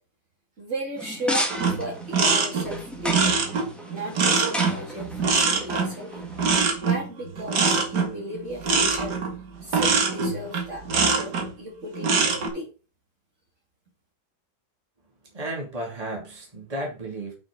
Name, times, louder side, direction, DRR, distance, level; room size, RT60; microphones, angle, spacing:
voice 1, 0.6-1.5 1.8-3.3 3.9-6.1 6.8-9.2 9.6-12.7, right 1 dB, 45° right, -2 dB, 3.1 m, -35 dB
sound 1, 1.0-6.5, equal, ahead, 1.7 m, -34 dB
sound 2, 1.5-11.5 11.9-12.5, right 4 dB, 70° right, 2.2 m, -23 dB
voice 2, 15.3-17.3, right 1 dB, 20° right, -1 dB, 2.8 m, -33 dB
6.3 x 6.1 x 5.2 m, 0.34 s
omnidirectional pair, 1.9 m